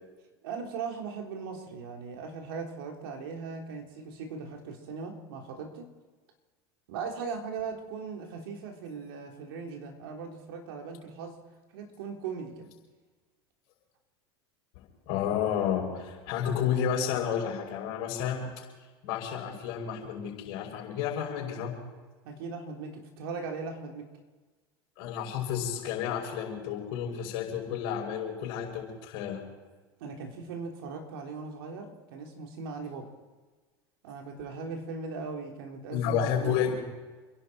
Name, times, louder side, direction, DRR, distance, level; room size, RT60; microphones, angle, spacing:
voice 1, 0.4-5.9 6.9-11.4 11.7-12.7 22.2-24.1 30.0-33.1 34.0-36.6, right 5 dB, 70° right, 2 dB, 3.5 m, -39 dB
voice 2, 14.7-18.4 19.0-21.7 25.0-29.4 35.9-36.8, left 8 dB, 65° left, 0 dB, 5.9 m, -31 dB
29.0 x 11.5 x 4.4 m, 1.3 s
hypercardioid pair, 90°, 13 cm